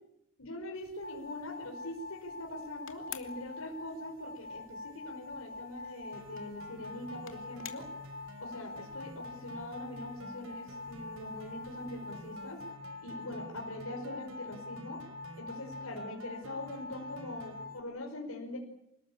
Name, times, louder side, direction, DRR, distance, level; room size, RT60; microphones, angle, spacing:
voice 1, 0.4-7.9 8.4-12.7 13.0-15.0 15.4-18.6, left 1 dB, 90° left, 1 dB, 5.3 m, -43 dB
sound 1, 0.7-12.7, left 10 dB, 65° left, 2.9 m, -55 dB
sound 2, 1.0-17.8, left 3 dB, 45° right, 2.3 m, -46 dB
sound 3, 6.1-17.6, right 1 dB, 80° right, 4.8 m, -51 dB
28.5 x 19.5 x 8.7 m, 0.83 s
head